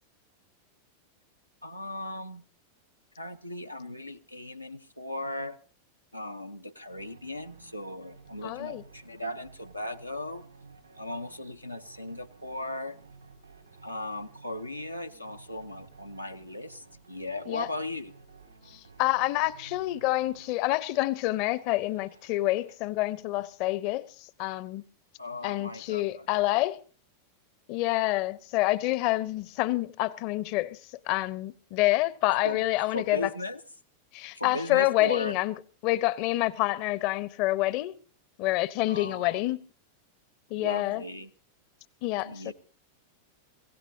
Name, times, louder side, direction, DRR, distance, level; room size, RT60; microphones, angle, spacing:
voice 1, 1.6-2.4 3.2-5.6 6.1-10.4 11.0-13.0 13.8-18.1 25.2-26.0 32.4-32.6 32.9-33.6 34.3-35.4 38.8-39.4 40.6-41.3 42.2-42.5, left 1 dB, 90° left, 0.8 m, -37 dB
sound 1, 6.9-22.8, right 4 dB, 85° right, 5.2 m, -54 dB
voice 2, 8.4-8.8 17.5-17.7 18.7-24.8 25.4-26.8 27.7-33.3 34.1-35.6 35.8-38.0 38.4-39.6 40.5-41.0 42.0-42.5, left 18 dB, 45° left, 0.8 m, -28 dB
25.0 x 16.0 x 2.7 m
figure-of-eight pair, 90°, 0 cm